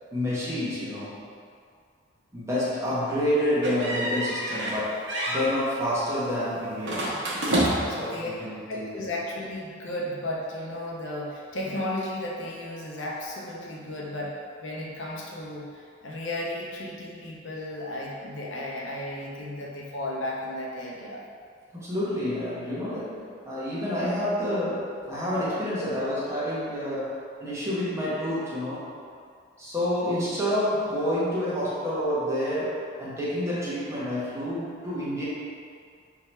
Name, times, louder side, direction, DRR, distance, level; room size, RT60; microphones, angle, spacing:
voice 1, 0.1-1.2 2.3-7.1 7.8-9.1 21.7-28.9 29.6-35.2, equal, 15° right, -9 dB, 1.0 m, -28 dB
sound 1, 3.6-4.8 5.1-5.5 6.8-8.0, right 1 dB, 65° right, 0.9 m, -27 dB
voice 2, 7.7-8.3 8.7-21.2, left 1 dB, 75° left, -4 dB, 0.7 m, -34 dB
3.7 x 2.9 x 4.4 m, 2.2 s
head